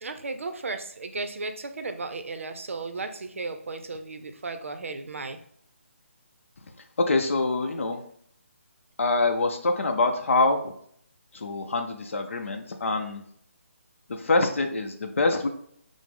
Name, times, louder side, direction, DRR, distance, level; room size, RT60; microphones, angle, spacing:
voice 1, 0.0-5.4, right 3 dB, 70° right, 8 dB, 0.5 m, -35 dB
voice 2, 7.1-8.0 9.0-10.6 11.3-13.2 14.1-15.5, left 3 dB, 65° left, 5 dB, 0.5 m, -25 dB
4.8 x 2.0 x 3.6 m, 0.65 s
hypercardioid pair, 175°, 7 cm